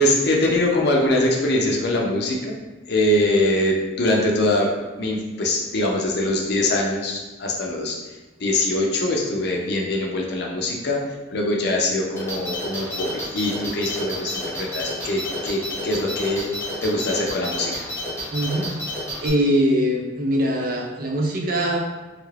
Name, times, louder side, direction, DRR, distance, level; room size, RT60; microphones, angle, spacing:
voice 1, 0.0-2.5 2.9-4.7 5.0-7.9 8.4-11.0 11.3-16.5 16.8-17.9, left 1 dB, 60° left, -1 dB, 0.6 m, -23 dB
sound 1, 12.2-19.3, left 1 dB, 15° left, 0.7 m, -30 dB
voice 2, 18.3-18.8 19.2-21.8, equal, 50° right, 0 dB, 0.5 m, -22 dB
3.3 x 2.4 x 3.2 m, 1.2 s
head